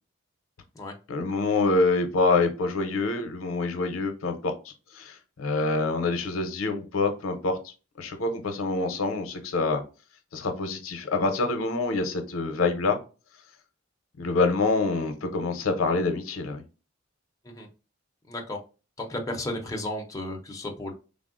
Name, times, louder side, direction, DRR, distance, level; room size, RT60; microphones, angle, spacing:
voice 1, 1.1-7.6 8.0-9.8 10.3-13.0 14.2-16.6, left 3 dB, 75° left, 7 dB, 0.6 m, -26 dB
voice 2, 18.3-18.6 19.0-20.9, left 1 dB, 15° left, 1 dB, 0.5 m, -33 dB
3.5 x 2.0 x 2.4 m, 0.32 s
head